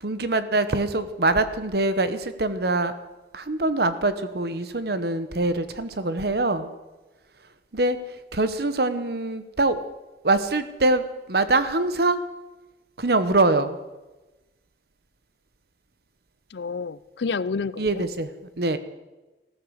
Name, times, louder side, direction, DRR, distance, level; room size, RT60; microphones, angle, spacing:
voice 1, 0.0-2.9 3.3-6.7 7.7-8.0 8.3-9.9 10.2-12.2 13.0-13.8 17.8-18.3 18.6-18.8, right 2 dB, 60° right, 12 dB, 1.1 m, -24 dB
voice 2, 16.5-18.1, left 4 dB, 70° left, 18 dB, 0.5 m, -29 dB
15.5 x 13.5 x 6.5 m, 1.1 s
head